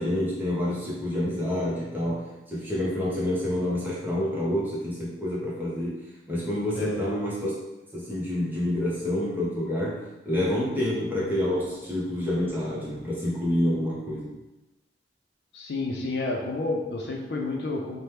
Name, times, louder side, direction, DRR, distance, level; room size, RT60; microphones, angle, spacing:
voice 1, 0.0-5.9 6.3-7.5 7.9-14.3, left 1 dB, 10° right, -7 dB, 0.7 m, -28 dB
voice 2, 15.5-18.0, left 2 dB, 70° left, 1 dB, 0.4 m, -30 dB
2.9 x 2.1 x 3.3 m, 1.0 s
head